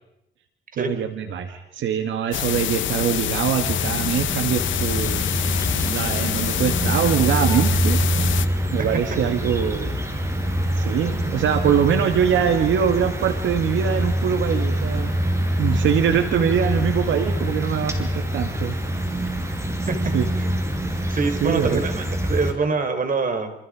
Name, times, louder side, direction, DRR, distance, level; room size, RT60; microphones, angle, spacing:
voice 1, 0.8-5.2 5.8-8.4 8.7-10.0 10.7-15.1 15.6-19.0 20.1-20.3 21.4-21.8, right 8 dB, 75° right, 6 dB, 2.1 m, -23 dB
sound 1, 2.3-8.5, left 12 dB, 75° left, 1.0 m, -26 dB
sound 2, 3.6-22.5, right 1 dB, 15° right, 5.5 m, -25 dB
voice 2, 8.8-9.2 19.9-20.0 20.4-20.5 21.1-23.5, right 4 dB, 45° right, 8 dB, 4.2 m, -25 dB
28.5 x 28.0 x 5.1 m, 0.87 s
cardioid pair, 90°, 20 cm